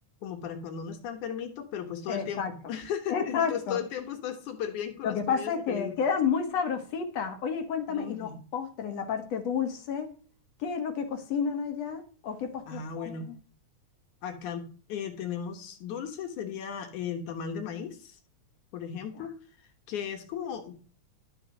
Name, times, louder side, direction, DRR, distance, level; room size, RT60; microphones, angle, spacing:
voice 1, 0.2-6.0 7.9-8.4 12.7-13.3 14.2-18.2 18.7-19.3 19.9-20.8, left 8 dB, 80° left, 5 dB, 2.9 m, -36 dB
voice 2, 2.1-2.5 3.1-3.8 5.0-10.1 10.6-13.3 19.2-19.3, left 6 dB, 60° left, 6 dB, 2.6 m, -31 dB
12.5 x 6.3 x 6.5 m, 0.39 s
omnidirectional pair, 3.4 m